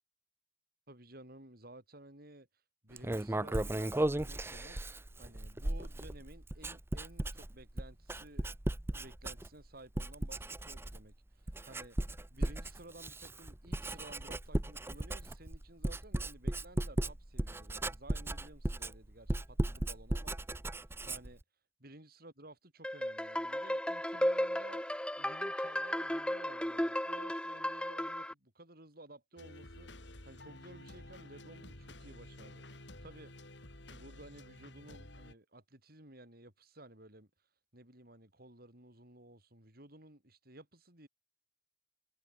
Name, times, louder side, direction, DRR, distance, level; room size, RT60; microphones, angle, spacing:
voice 1, 0.9-2.5 2.8-8.5 8.9-12.0 12.3-20.5 21.0-21.4 21.8-24.8 25.2-33.3 33.9-37.3 37.7-41.1, right 1 dB, 55° right, 7.9 m, -55 dB
Writing, 3.0-9.7 10.0-11.1 11.5-21.4, right 1 dB, 15° right, 0.6 m, -36 dB
sound 1, 22.8-28.3, left 1 dB, 5° left, 3.4 m, -34 dB
sound 2, 29.4-35.3, left 1 dB, 80° left, 6.1 m, -52 dB
head